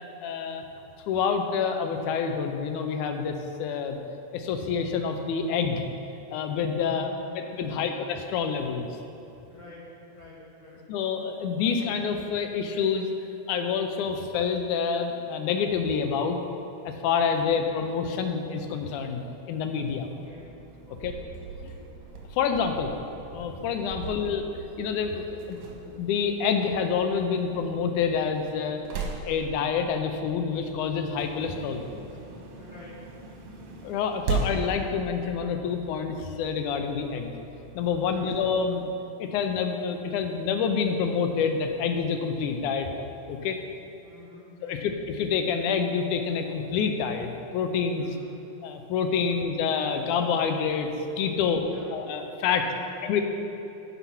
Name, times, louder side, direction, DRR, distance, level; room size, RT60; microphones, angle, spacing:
voice 1, 0.2-0.6 1.1-4.0 4.3-5.8 6.3-8.9 10.9-13.1 13.5-16.4 16.9-20.1 21.0-21.1 21.6-21.7 22.3-22.9 23.3-24.4 24.8-25.6 25.9-28.8 29.2-32.1 33.8-37.4 37.8-38.9 39.2-42.9 43.3-43.6 44.6-48.1 48.6-50.9 51.2-51.7 51.9-52.6 53.0-53.2, left 6 dB, 85° left, 6 dB, 2.2 m, -27 dB
voice 2, 6.8-7.3 7.5-8.0 9.5-10.8 17.2-17.6 20.1-20.5 20.9-21.2 21.5-21.9 23.9-24.3 32.6-33.0 38.0-38.5 44.0-44.8 47.9-48.4 49.2-49.6 51.4-51.9 52.4-53.2, left 3 dB, 35° left, -7 dB, 2.4 m, -48 dB
sound 1, 20.1-38.8, right 4 dB, 70° right, 2.3 m, -39 dB
10.0 x 5.6 x 5.7 m, 3.0 s
omnidirectional pair, 3.5 m